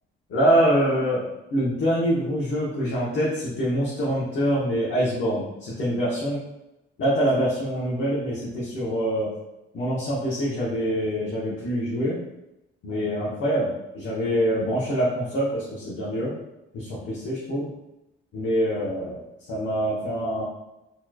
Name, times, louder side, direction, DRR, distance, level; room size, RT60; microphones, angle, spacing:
voice 1, 0.3-1.2 1.5-6.4 7.0-9.3 9.7-12.2 12.8-16.3 16.7-17.7 18.3-19.2 19.5-20.4, equal, 70° left, -7 dB, 1.1 m, -25 dB
4.3 x 3.1 x 2.4 m, 0.92 s
cardioid pair, 90°, 20 cm